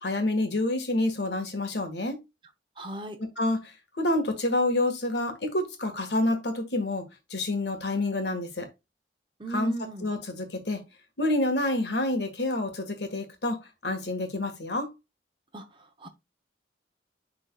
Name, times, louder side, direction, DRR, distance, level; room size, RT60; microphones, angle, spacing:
voice 1, 0.0-2.2 3.4-7.0 7.3-8.7 9.5-9.7 10.0-10.8 11.2-14.9, left 2 dB, 70° left, 1.7 m, -28 dB
voice 2, 2.8-3.2 9.4-10.1 15.5-16.1, right 2 dB, 25° right, 0.8 m, -37 dB
10.5 x 3.8 x 2.3 m
head